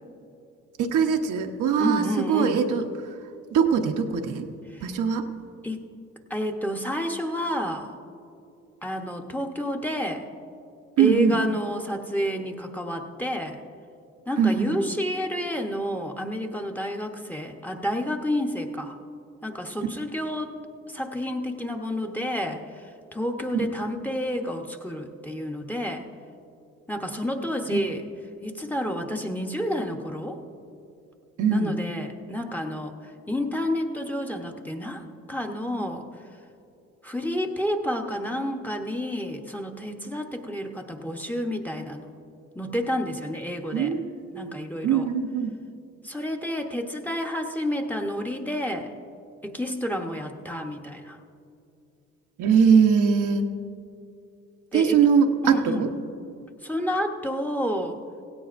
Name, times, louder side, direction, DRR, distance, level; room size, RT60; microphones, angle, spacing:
voice 1, 0.8-3.1 3.5-4.5 4.8-5.3 11.0-11.4 14.4-14.8 27.7-27.8 31.4-31.8 43.7-44.1 44.3-44.6 44.8-45.5 52.4-53.5 54.7-55.9, right 6 dB, 80° right, 4 dB, 1.0 m, -22 dB
voice 2, 1.8-2.6 4.7-4.8 5.6-5.9 6.3-7.9 8.8-10.3 11.0-13.6 14.3-19.0 19.4-20.5 20.9-26.1 26.9-28.0 28.4-30.4 31.5-32.9 33.3-36.1 37.0-42.1 42.5-43.9 44.3-45.1 46.0-48.9 49.4-51.2 54.7-55.0 55.4-55.9 56.6-58.0, equal, 5° left, 4 dB, 1.0 m, -30 dB
17.0 x 16.5 x 2.6 m, 2.6 s
cardioid pair, 90°, 30 cm